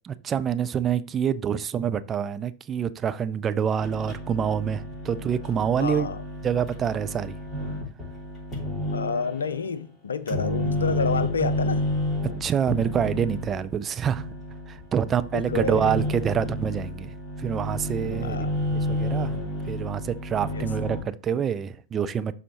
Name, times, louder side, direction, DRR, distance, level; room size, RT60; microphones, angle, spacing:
voice 1, 0.0-6.1 6.4-7.4 12.2-14.3 14.7-18.4 18.7-19.4 19.7-22.4, right 8 dB, 25° right, 0.5 m, -26 dB
sound 1, 3.8-9.6 10.3-21.0, left 1 dB, 15° left, 3.7 m, -31 dB
voice 2, 5.8-6.2 8.9-11.9 15.3-15.9 18.2-18.5 20.5-20.7, left 5 dB, 75° left, 0.6 m, -29 dB
12.0 x 4.2 x 3.0 m
figure-of-eight pair, 90°, 0 cm